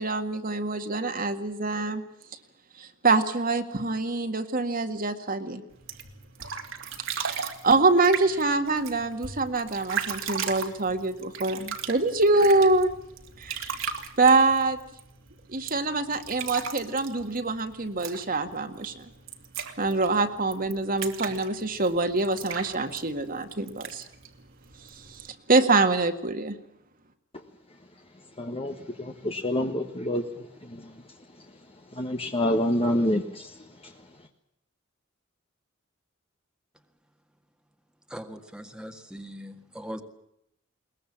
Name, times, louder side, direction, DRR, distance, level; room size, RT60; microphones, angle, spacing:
voice 1, 0.0-2.0 2.8-5.6 7.2-12.9 13.4-13.9 14.2-14.8 15.5-19.1 19.8-24.0 24.9-26.6, right 3 dB, 45° right, 7 dB, 1.9 m, -25 dB
sound 1, 5.7-25.3, right 6 dB, 70° right, 2.7 m, -38 dB
voice 2, 28.4-31.6 31.9-34.3, left 1 dB, 30° left, 4 dB, 1.4 m, -29 dB
voice 3, 38.1-40.0, equal, 5° right, 5 dB, 1.8 m, -40 dB
22.0 x 20.0 x 8.7 m, 0.76 s
head